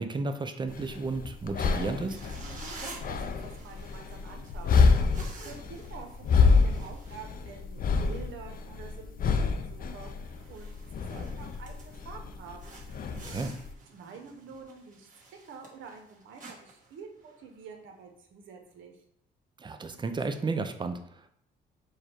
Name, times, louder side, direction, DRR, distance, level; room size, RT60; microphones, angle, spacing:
voice 1, 0.0-2.2 13.1-13.5 19.6-21.3, right 3 dB, 25° right, 7 dB, 0.5 m, -33 dB
sound 1, 0.7-13.7, left 5 dB, 45° left, 0.5 m, -28 dB
sound 2, 2.1-7.8 8.1-8.3 8.8-9.0 9.4-9.5 10.0-10.1 10.3-12.1 12.6-17.6, right 3 dB, 40° right, 1.3 m, -49 dB
voice 2, 3.1-12.8 13.9-15.1 15.4-19.0, right 5 dB, 75° right, 3 dB, 0.8 m, -48 dB
4.8 x 2.2 x 4.4 m, 0.70 s
cardioid pair, 90°, 20 cm